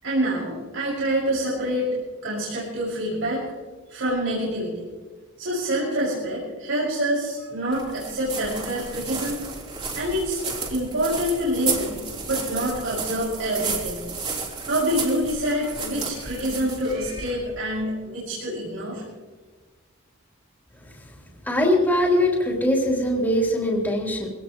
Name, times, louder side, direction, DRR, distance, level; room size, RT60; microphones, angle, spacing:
voice 1, 0.0-2.0 2.2-3.4 3.9-4.8 5.4-9.4 9.9-10.4 10.7-14.0 14.7-19.0, equal, 85° right, -7 dB, 6.1 m, -26 dB
sound 1, 7.7-17.6, right 4 dB, 30° right, 3.6 m, -32 dB
voice 2, 21.5-24.3, left 1 dB, 10° left, -3 dB, 3.6 m, -21 dB
24.0 x 18.0 x 3.1 m, 1.4 s
head